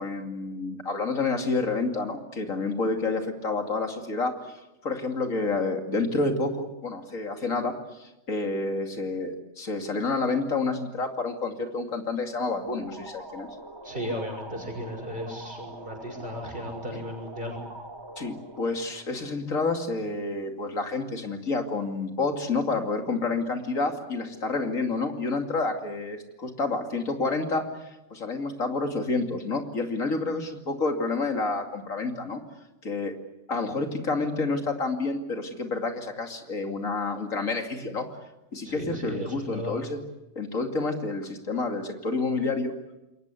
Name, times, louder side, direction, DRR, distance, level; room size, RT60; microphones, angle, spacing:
voice 1, 0.0-4.4 4.8-13.5 18.2-27.7 28.1-32.4 32.8-33.1 33.5-38.1 38.5-40.0 40.4-42.7, left 3 dB, 75° left, 4 dB, 3.0 m, -29 dB
sound 1, 12.4-19.8, right 2 dB, 20° right, 1.8 m, -44 dB
voice 2, 13.8-17.6 38.6-39.8, equal, 40° right, 3 dB, 6.5 m, -35 dB
28.0 x 22.5 x 8.3 m, 0.99 s
omnidirectional pair, 1.4 m